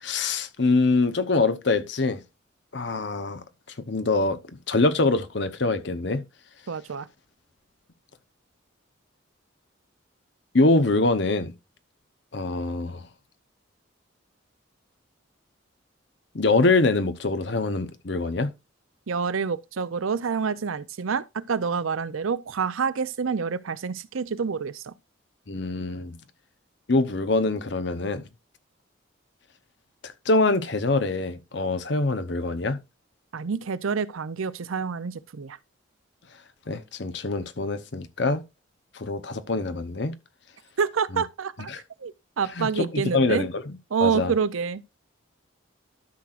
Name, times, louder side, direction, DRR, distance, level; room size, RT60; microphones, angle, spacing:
voice 1, 0.0-2.2 2.7-3.4 3.9-4.4 4.7-6.2 10.5-11.5 12.3-13.0 16.3-18.5 25.5-26.2 26.9-28.2 30.0-32.8 36.7-38.4 38.9-40.1 41.1-41.2 41.7-41.8 42.6-44.3, left 3 dB, 60° left, 0.9 m, -24 dB
voice 2, 6.7-7.1 19.1-24.9 33.3-35.6 40.8-41.7 42.0-43.5 43.9-44.8, right 5 dB, 90° right, 0.6 m, -27 dB
12.5 x 6.1 x 2.5 m
head